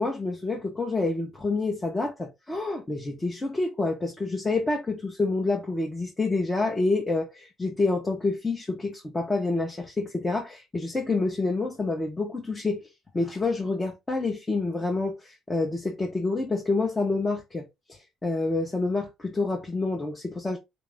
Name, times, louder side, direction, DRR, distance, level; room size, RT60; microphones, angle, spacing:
voice 1, 0.0-12.9 13.1-20.6, left 3 dB, 15° left, 0.8 m, -28 dB
4.0 x 2.6 x 3.4 m
cardioid pair, 150°, 0 cm